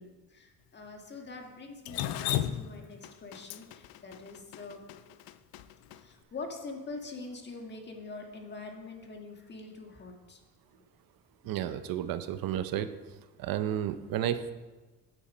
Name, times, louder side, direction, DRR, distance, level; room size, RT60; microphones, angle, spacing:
voice 1, 0.0-4.9 5.9-10.4, left 3 dB, 30° left, 2 dB, 1.5 m, -44 dB
Drip, 1.9-6.0, left 12 dB, 85° left, 0.6 m, -34 dB
voice 2, 11.4-12.9 13.4-14.5, right 11 dB, 75° right, 11 dB, 0.7 m, -32 dB
9.1 x 8.4 x 5.1 m, 1.2 s
cardioid pair, 135°, 35 cm